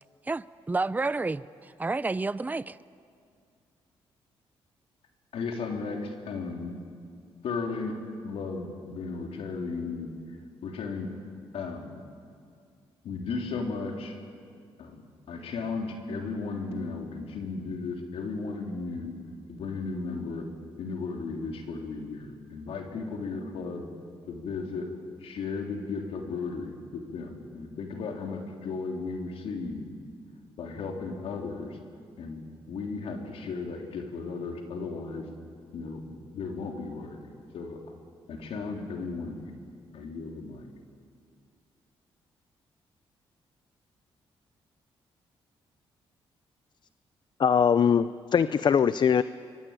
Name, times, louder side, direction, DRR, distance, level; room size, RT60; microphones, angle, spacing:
voice 1, 0.2-2.8, right 3 dB, 15° right, 16 dB, 0.5 m, -30 dB
voice 2, 5.3-6.8 7.4-8.0 8.2-11.1 11.5-12.0 13.0-14.2 14.8-19.1 19.5-20.5 20.8-23.9 24.3-24.9 25.2-29.9 30.6-31.8 32.2-32.4 32.7-35.3 35.7-37.3 37.5-37.8 38.3-39.6 39.9-40.7, left 4 dB, 75° left, 2 dB, 3.6 m, -35 dB
voice 3, 47.4-49.2, left 7 dB, 50° left, 14 dB, 0.6 m, -22 dB
25.0 x 23.0 x 9.0 m, 2.3 s
cardioid pair, 80°, 10 cm